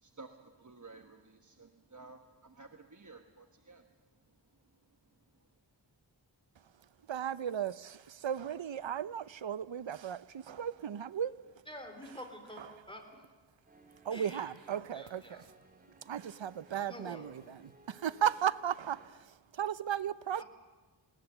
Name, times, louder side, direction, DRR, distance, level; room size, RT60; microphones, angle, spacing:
voice 1, 0.0-3.9, right 3 dB, 40° right, 1.3 m, -53 dB
voice 2, 7.1-11.4 12.6-12.8 14.0-15.5 16.1-20.4, right 9 dB, 75° right, 0.7 m, -36 dB
voice 3, 11.7-13.0 14.1-14.4 14.9-15.4 16.9-17.5 20.4-20.5, left 1 dB, 10° left, 3.7 m, -48 dB
sound 1, 13.7-19.1, right 2 dB, 20° right, 2.8 m, -62 dB
20.0 x 18.5 x 9.0 m
wide cardioid pair, 75°, 46 cm